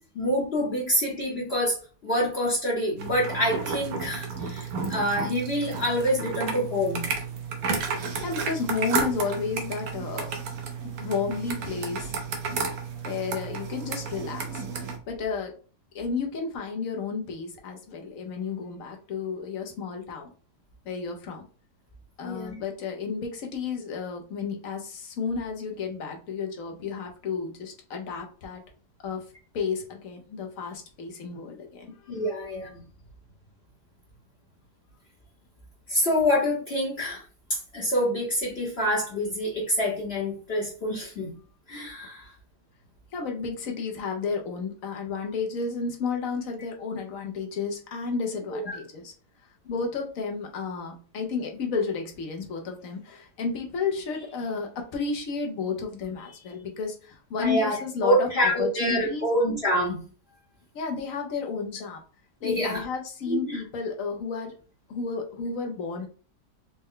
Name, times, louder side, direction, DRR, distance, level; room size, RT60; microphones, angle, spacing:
voice 1, 0.1-1.8 2.0-7.1 22.2-22.6 32.1-32.8 35.9-37.2 37.5-41.3 41.7-42.3 48.5-48.8 57.4-60.0 62.4-62.8 63.3-63.6, equal, 45° left, -3 dB, 1.0 m, -26 dB
sound 1, 3.0-15.0, right 5 dB, 65° right, 1.1 m, -32 dB
voice 2, 8.2-10.3 10.8-12.1 13.0-14.6 15.1-15.6 15.9-20.3 20.9-21.4 22.2-28.6 29.0-29.2 29.5-32.2 43.1-49.1 49.4-59.3 60.7-62.0 62.4-64.5 64.9-66.1, left 5 dB, 65° left, 2 dB, 1.0 m, -32 dB
4.2 x 2.1 x 3.7 m, 0.38 s
omnidirectional pair, 1.7 m